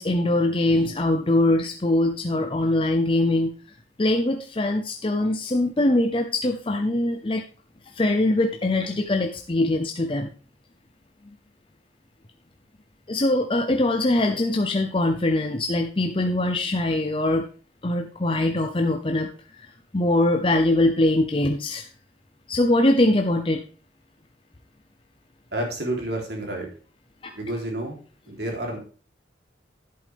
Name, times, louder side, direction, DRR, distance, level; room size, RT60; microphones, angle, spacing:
voice 1, 0.0-3.5 4.0-7.4 7.9-10.3 13.1-17.5 17.8-19.7 19.9-21.9 22.5-23.6 27.2-27.3, left 1 dB, 30° left, 4 dB, 0.7 m, -22 dB
voice 2, 25.5-26.7 27.3-28.0 28.3-28.8, right 1 dB, 60° right, 1 dB, 3.6 m, -29 dB
11.5 x 8.2 x 3.5 m, 0.39 s
head